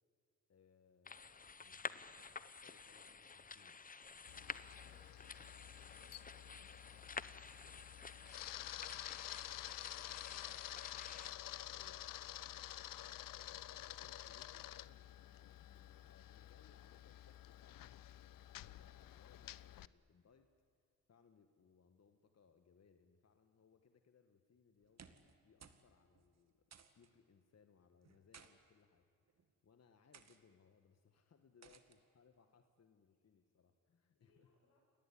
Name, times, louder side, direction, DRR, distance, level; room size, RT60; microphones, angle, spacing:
voice 1, 0.5-1.3 1.6-3.8 4.3-4.7 8.5-8.7 11.7-12.3 13.4-20.5 21.1-34.5, left 6 dB, 45° left, 7 dB, 1.6 m, -70 dB
sound 1, 1.1-11.3, left 5 dB, 25° left, 0.9 m, -51 dB
Camera, 4.3-19.9, left 13 dB, 70° left, 0.7 m, -50 dB
sound 2, 24.8-25.3 25.6-25.9 26.1-26.3 26.7-27.1 28.0-28.5 29.3-29.5 30.1-30.4 31.6-32.0, right 6 dB, 50° right, 2.1 m, -60 dB
voice 2, 34.1-34.8, left 3 dB, 85° left, 1 dB, 6.9 m, -77 dB
29.5 x 18.5 x 9.9 m, 2.2 s
cardioid pair, 70°, 35 cm